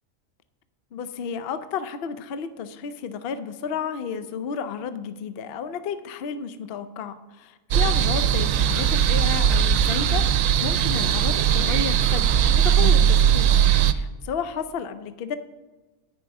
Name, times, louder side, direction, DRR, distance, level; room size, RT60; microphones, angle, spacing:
voice 1, 0.9-13.6 13.9-15.4, left 6 dB, 55° left, 11 dB, 0.7 m, -32 dB
sound 1, 7.7-13.9, right 9 dB, 80° right, 0.9 m, -19 dB
9.6 x 5.3 x 7.8 m, 1.2 s
omnidirectional pair, 1.4 m